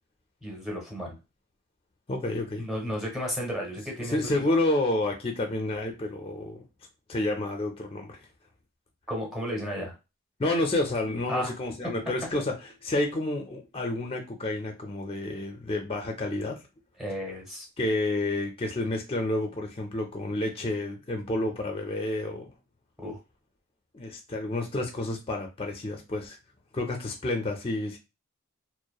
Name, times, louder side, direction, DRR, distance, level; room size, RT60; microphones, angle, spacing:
voice 1, 0.4-1.2 2.6-4.5 9.1-9.9 11.3-11.5 17.0-17.7 23.0-23.2, equal, ahead, -1 dB, 0.8 m, -33 dB
voice 2, 2.1-2.7 4.0-6.6 7.1-8.2 10.4-16.6 17.8-22.5 23.9-26.4 26.7-28.0, left 2 dB, 30° left, 3 dB, 0.4 m, -29 dB
2.8 x 2.0 x 2.3 m, 0.27 s
head